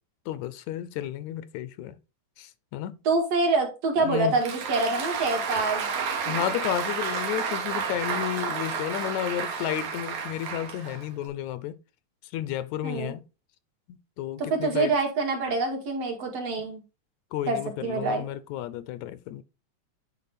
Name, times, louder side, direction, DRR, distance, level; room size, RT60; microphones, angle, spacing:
voice 1, 0.3-2.0 2.4-3.0 4.0-4.3 5.6-5.7 6.3-11.7 12.3-13.2 13.9-14.9 17.3-19.4, left 12 dB, 80° left, 2.0 m, -32 dB
voice 2, 3.0-5.9 12.8-13.1 14.4-16.8 17.5-18.2, right 3 dB, 60° right, 3.0 m, -26 dB
Applause, 4.1-11.3, right 6 dB, 85° right, 3.0 m, -31 dB
9.6 x 4.3 x 4.2 m
omnidirectional pair, 3.3 m